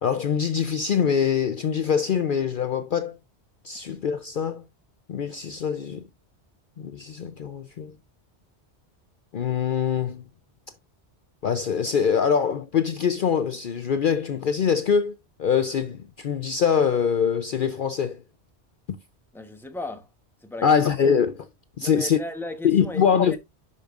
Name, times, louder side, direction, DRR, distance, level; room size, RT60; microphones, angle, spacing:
voice 1, 0.0-3.2 3.6-4.6 5.1-6.0 6.8-7.9 9.3-10.2 11.4-18.2 20.6-21.5 21.8-22.2 22.6-23.4, left 7 dB, 55° left, 0.7 m, -23 dB
voice 2, 19.3-20.1 20.4-20.8 21.8-23.4, left 2 dB, ahead, 0.9 m, -36 dB
11.0 x 5.1 x 2.4 m
omnidirectional pair, 1.1 m